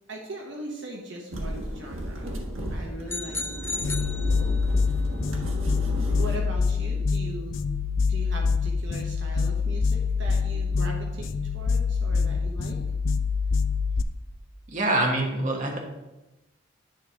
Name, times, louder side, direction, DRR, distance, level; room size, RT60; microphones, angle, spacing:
voice 1, 0.1-2.4 2.7-4.3 5.1-5.3 6.2-7.6 8.0-12.8, right 1 dB, 65° right, 0 dB, 1.1 m, -40 dB
sound 1, 1.3-6.4, right 1 dB, 85° right, 1.4 m, -34 dB
sound 2, 3.1-4.9, left 2 dB, 10° left, 0.4 m, -34 dB
sound 3, 3.8-14.0, left 4 dB, 70° left, 0.5 m, -26 dB
voice 2, 14.7-15.8, right 2 dB, 40° right, 0 dB, 1.4 m, -25 dB
10.5 x 3.6 x 5.7 m, 1.0 s
head